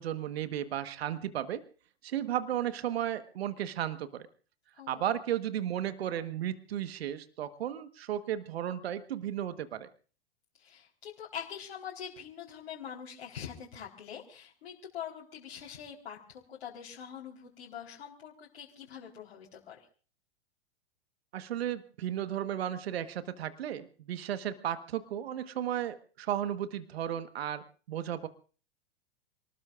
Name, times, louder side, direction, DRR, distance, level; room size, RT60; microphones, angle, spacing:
voice 1, 0.0-1.6 2.0-4.2 4.9-9.9 21.3-28.3, right 11 dB, 70° right, 11 dB, 1.4 m, -34 dB
voice 2, 4.7-5.1 10.6-19.9, left 8 dB, 65° left, -3 dB, 4.0 m, -44 dB
28.5 x 19.5 x 2.5 m, 0.40 s
hypercardioid pair, 100°, 32 cm